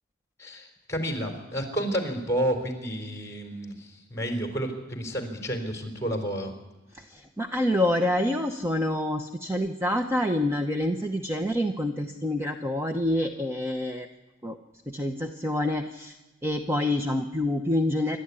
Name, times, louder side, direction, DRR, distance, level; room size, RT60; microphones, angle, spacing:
voice 1, 0.4-6.5, equal, 15° left, 4 dB, 4.2 m, -30 dB
voice 2, 7.1-14.1 14.4-14.6 14.9-16.1 16.4-18.2, left 1 dB, 10° right, 4 dB, 0.9 m, -27 dB
28.0 x 12.5 x 9.8 m, 1.1 s
head